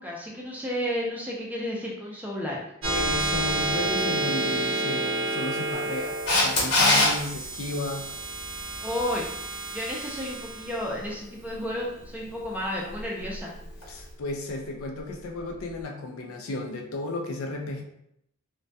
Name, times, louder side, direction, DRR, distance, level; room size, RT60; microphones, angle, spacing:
voice 1, 0.0-2.6 8.8-9.2 9.5-13.5, equal, 5° right, -3 dB, 0.4 m, -32 dB
sound 1, 2.8-13.7, right 2 dB, 60° right, 0.6 m, -30 dB
voice 2, 2.9-8.1 13.9-17.8, left 2 dB, 70° left, 2 dB, 0.4 m, -33 dB
Camera, 6.3-7.1 13.8-13.9, left 2 dB, 90° left, 1.0 m, -20 dB
2.2 x 2.2 x 2.6 m, 0.75 s
head